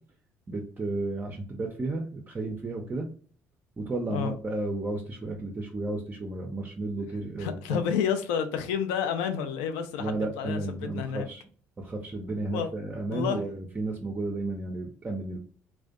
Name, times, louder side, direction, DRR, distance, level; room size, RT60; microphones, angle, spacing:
voice 1, 0.5-3.1 3.8-7.8 10.0-11.4 11.8-15.4, right 2 dB, 25° right, 0.4 m, -33 dB
voice 2, 7.4-11.3 12.5-12.7 13.1-13.4, left 8 dB, 65° left, 0.4 m, -30 dB
2.4 x 2.1 x 2.4 m
figure-of-eight pair, 50°, 8 cm